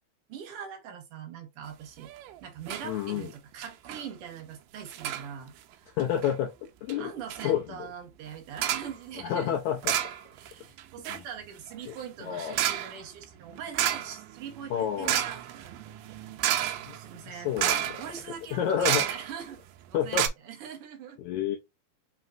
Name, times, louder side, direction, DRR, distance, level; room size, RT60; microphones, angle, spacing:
voice 1, 0.3-2.1 2.4-5.9 7.0-9.5 10.4-16.0 16.9-17.5 18.0-19.6 19.9-21.2, right 7 dB, 60° right, 1.5 m, -42 dB
sound 1, 2.0-2.3 2.7-2.9 3.2-3.3 3.6-4.0 4.9-5.3 6.0-6.3 6.9-7.0 7.3-7.5 8.6-8.9 9.8-10.5 10.8-19.5 19.8-19.9 20.1-20.3, right 12 dB, 85° right, 2.2 m, -31 dB
voice 2, 2.8-3.3 6.0-6.5 6.8-7.1 7.4-7.6 9.2-10.0 12.3-12.6 14.7-15.1 16.9-17.0 17.3-18.0 18.5-19.0 19.9-20.3 21.2-21.6, left 9 dB, 85° left, 1.7 m, -29 dB
5.4 x 3.0 x 2.5 m
omnidirectional pair, 3.9 m